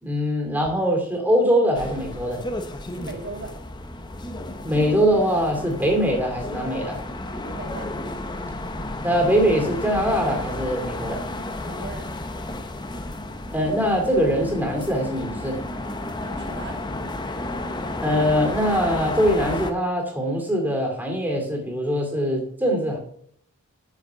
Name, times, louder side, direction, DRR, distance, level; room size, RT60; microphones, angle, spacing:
voice 1, 0.0-2.4 4.6-7.0 9.0-11.2 13.5-15.6 18.0-23.0, equal, 10° right, 2 dB, 2.5 m, -22 dB
sound 1, 1.7-19.7, left 2 dB, 20° left, 0.8 m, -32 dB
voice 2, 3.0-3.5 7.4-7.9 11.6-12.1 16.2-16.8, right 3 dB, 50° right, 3 dB, 2.1 m, -37 dB
8.4 x 6.4 x 6.8 m, 0.67 s
head